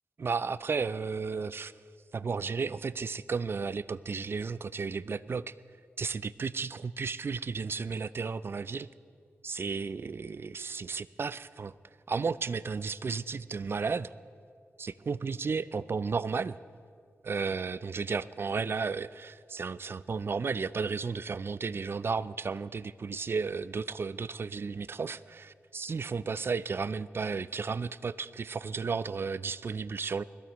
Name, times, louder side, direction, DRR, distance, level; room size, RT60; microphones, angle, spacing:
voice 1, 0.2-1.7 2.1-5.5 6.0-8.9 9.4-11.7 12.1-14.1 14.8-16.6 17.2-30.2, right 5 dB, 55° right, 17 dB, 0.4 m, -33 dB
21.0 x 14.5 x 3.1 m, 2.2 s
cardioid pair, 50°, 5 cm